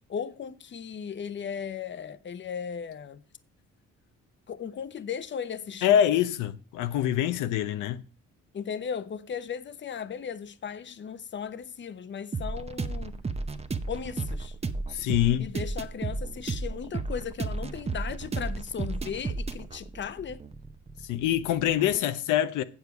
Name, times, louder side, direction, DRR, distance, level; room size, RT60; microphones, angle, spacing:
voice 1, 0.1-3.2 4.5-6.0 8.5-13.2 13.9-14.6 15.4-20.4, left 7 dB, 40° left, 0.8 m, -36 dB
voice 2, 5.8-8.0 14.9-15.5 21.1-22.6, left 11 dB, 90° left, 0.7 m, -25 dB
sound 1, 12.3-22.0, right 3 dB, 20° right, 0.8 m, -34 dB
8.0 x 7.2 x 5.9 m
cardioid pair, 90°, 30 cm